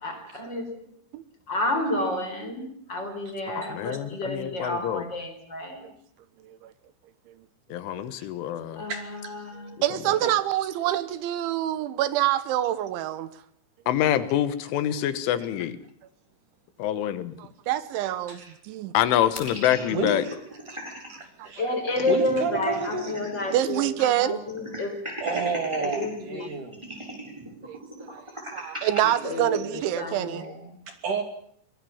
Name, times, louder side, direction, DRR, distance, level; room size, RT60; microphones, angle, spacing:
voice 1, 0.0-1.0 1.5-5.9 8.8-9.7 21.6-25.0 25.3-25.4 25.8-26.6 29.0-30.8, left 2 dB, 25° left, 4.4 m, -31 dB
voice 2, 3.7-5.0 7.7-8.9 13.9-15.8 16.8-17.3 18.9-20.2, left 11 dB, 85° left, 3.9 m, -26 dB
voice 3, 8.9-9.3 10.2-10.3 18.3-18.5 19.9-20.4 20.7-20.8 21.1-21.6 22.1-23.1 25.2-26.8 30.9-31.2, right 4 dB, 45° right, 3.9 m, -30 dB
voice 4, 9.8-13.3 17.4-18.9 21.4-21.5 23.5-24.4 27.6-28.2 28.5-30.4, right 13 dB, 80° right, 3.4 m, -26 dB
sound 1, 19.4-21.1 21.5-21.6 21.8-23.6 23.9-24.0 24.5-26.1 26.7-29.0, equal, 5° right, 7.0 m, -37 dB
25.5 x 20.5 x 7.2 m
omnidirectional pair, 5.4 m